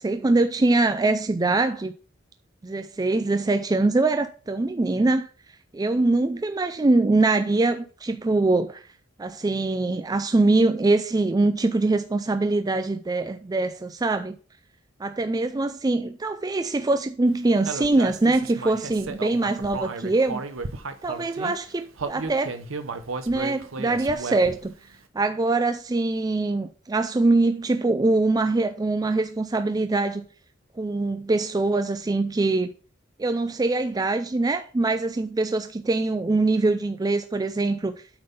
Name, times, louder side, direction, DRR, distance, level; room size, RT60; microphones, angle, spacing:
voice 1, 0.0-1.9 2.6-5.3 5.7-8.8 9.2-14.4 15.0-20.4 21.0-22.6 23.3-24.7 25.1-30.2 30.8-32.7 33.2-37.9, right 2 dB, 20° right, 0.4 m, -23 dB
Human voice, 17.7-21.5 22.0-24.7, right 4 dB, 90° right, 0.8 m, -34 dB
8.8 x 3.9 x 5.5 m
head